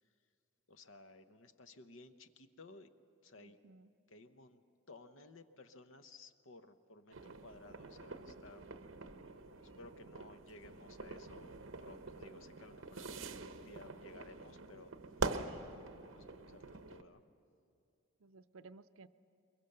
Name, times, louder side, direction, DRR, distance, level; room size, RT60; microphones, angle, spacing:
voice 1, 0.7-2.9 3.2-3.6 4.1-4.6 4.9-8.7 9.8-11.5 11.8-14.9 16.1-17.2, left 2 dB, 65° left, 10 dB, 0.9 m, -57 dB
voice 2, 3.3-3.9 15.4-15.8 18.2-19.1, right 3 dB, 85° right, 13 dB, 0.6 m, -58 dB
sound 1, 7.1-17.0, right 3 dB, 65° right, 0.9 m, -45 dB
22.5 x 22.0 x 6.6 m, 2.5 s
head